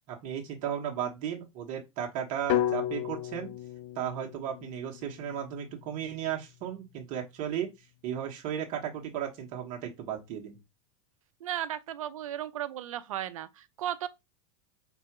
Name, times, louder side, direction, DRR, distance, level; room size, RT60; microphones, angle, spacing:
voice 1, 0.1-3.5 3.9-10.6, right 9 dB, 50° right, 1.2 m, -35 dB
sound 1, 2.5-6.6, left 11 dB, 55° left, 0.5 m, -34 dB
voice 2, 11.4-14.1, right 11 dB, 80° right, 0.6 m, -35 dB
3.7 x 2.7 x 4.6 m
hypercardioid pair, 110°, 17 cm